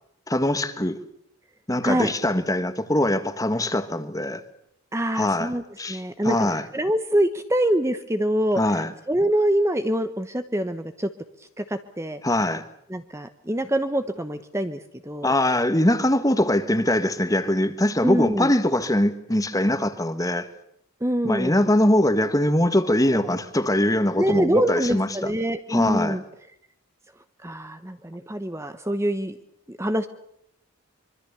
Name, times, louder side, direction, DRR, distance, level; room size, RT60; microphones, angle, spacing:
voice 1, 0.3-1.0 1.7-4.4 5.1-5.5 5.8-6.6 8.6-8.9 12.2-12.6 15.2-20.5 21.2-25.3 25.7-26.2, left 1 dB, 15° left, 1.6 m, -22 dB
voice 2, 4.9-5.6 5.9-8.8 9.1-11.1 11.6-12.2 12.9-15.6 18.0-18.5 21.0-21.6 24.2-26.2 27.4-29.4 29.7-30.1, right 1 dB, 10° right, 1.0 m, -25 dB
25.0 x 24.5 x 6.9 m
head